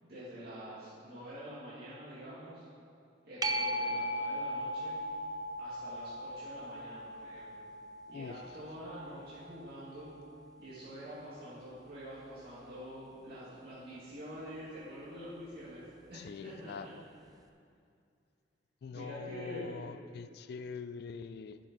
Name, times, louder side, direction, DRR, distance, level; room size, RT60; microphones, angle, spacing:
voice 1, 0.0-2.7 3.2-5.0 5.6-7.6 8.1-10.1 10.6-16.9 18.9-19.8, equal, 55° right, -11 dB, 2.1 m, -46 dB
sound 1, 3.4-10.6 16.1-16.2, equal, 20° right, 0.4 m, -38 dB
voice 2, 16.1-17.0 18.8-21.6, left 5 dB, 55° left, 12 dB, 0.3 m, -43 dB
11.0 x 5.7 x 5.2 m, 2.4 s
head